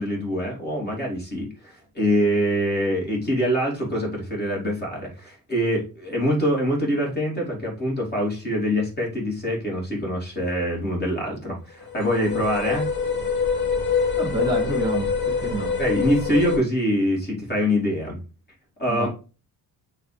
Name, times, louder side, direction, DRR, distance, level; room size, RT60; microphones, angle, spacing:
voice 1, 0.0-12.9 15.8-18.2 18.8-19.1, equal, 25° left, -2 dB, 2.9 m, -24 dB
sound 1, 11.8-16.6, left 5 dB, 75° left, 1.5 m, -25 dB
voice 2, 14.2-15.8 18.9-19.1, right 1 dB, 10° right, -1 dB, 2.1 m, -28 dB
8.7 x 3.4 x 3.4 m, 0.33 s
cardioid pair, 135°, 36 cm